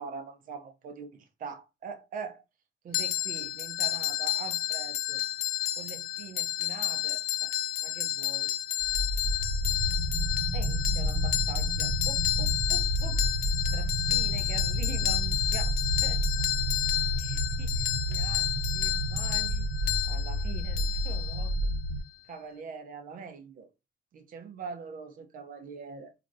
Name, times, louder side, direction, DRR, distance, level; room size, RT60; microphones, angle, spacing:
voice 1, 0.0-2.4 2.8-5.2 5.8-7.5 7.8-8.5 10.5-16.2 17.2-19.7 20.0-21.5 22.3-23.7 24.1-26.1, right 5 dB, 55° right, 0.7 m, -43 dB
sound 1, 2.9-21.7, left 14 dB, 60° left, 0.6 m, -31 dB
sound 2, 8.8-22.0, equal, 80° right, 1.0 m, -30 dB
4.4 x 2.5 x 2.6 m
cardioid pair, 110°, 17 cm